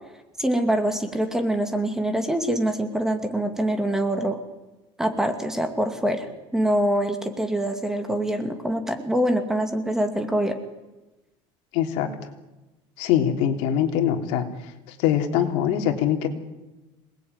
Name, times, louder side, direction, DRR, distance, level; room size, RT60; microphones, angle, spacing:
voice 1, 0.4-4.4 5.0-6.3 6.5-10.6, right 1 dB, 5° right, 6 dB, 2.3 m, -24 dB
voice 2, 11.7-12.1 13.0-14.4 14.9-16.3, left 10 dB, 70° left, 5 dB, 3.5 m, -23 dB
27.0 x 20.0 x 9.7 m, 1.1 s
cardioid pair, 170°, 11 cm